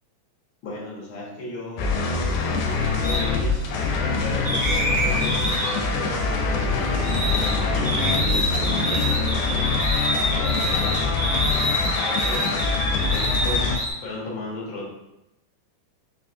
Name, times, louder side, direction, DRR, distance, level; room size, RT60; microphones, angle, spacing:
voice 1, 0.6-3.6 4.2-9.6 10.3-12.9 13.4-14.9, left 2 dB, 65° left, -5 dB, 1.1 m, -35 dB
sound 1, 1.8-13.8, left 4 dB, 90° left, 2.2 m, -24 dB
sound 2, 2.1-9.5, right 2 dB, 75° right, 2.1 m, -37 dB
sound 3, 3.0-3.2 4.4-7.5 7.8-13.9, equal, 55° right, 0.7 m, -27 dB
5.4 x 2.6 x 2.5 m, 0.91 s
omnidirectional pair, 3.8 m